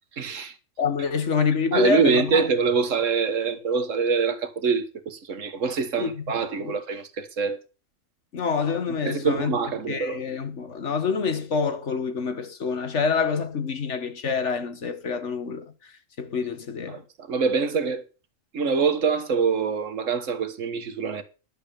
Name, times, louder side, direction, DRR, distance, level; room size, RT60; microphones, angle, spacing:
voice 1, 0.2-0.5 1.7-7.6 9.1-10.2 16.9-17.0 17.3-18.0 18.5-21.2, right 5 dB, 90° right, 1.7 m, -24 dB
voice 2, 0.8-2.4 6.0-6.2 6.6-6.7 8.3-9.6 9.9-15.7 16.2-17.0, left 5 dB, 70° left, 1.8 m, -26 dB
11.0 x 7.0 x 6.7 m
omnidirectional pair, 1.3 m